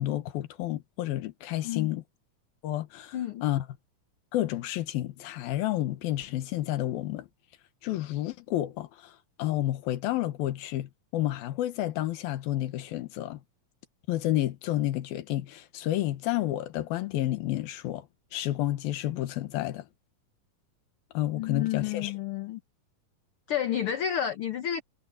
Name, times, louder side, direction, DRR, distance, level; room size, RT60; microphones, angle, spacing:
voice 1, 0.0-2.0 2.6-3.7 4.3-7.3 7.8-13.4 14.1-18.1 18.3-19.9 21.1-22.1, left 14 dB, 85° left, 3.1 m, -30 dB
voice 2, 3.1-3.4 21.3-22.6 23.5-24.8, left 10 dB, 60° left, 1.4 m, -30 dB
omnidirectional pair, 4.1 m